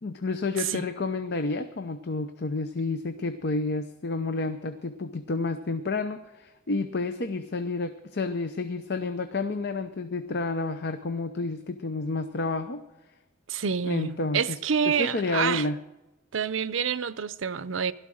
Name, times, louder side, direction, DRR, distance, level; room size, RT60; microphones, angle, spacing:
voice 1, 0.0-12.8 13.8-14.6 14.8-15.8, left 3 dB, 55° left, 0.7 m, -30 dB
voice 2, 13.5-15.7 16.3-17.9, right 7 dB, 80° right, 0.6 m, -28 dB
16.5 x 12.5 x 6.4 m
head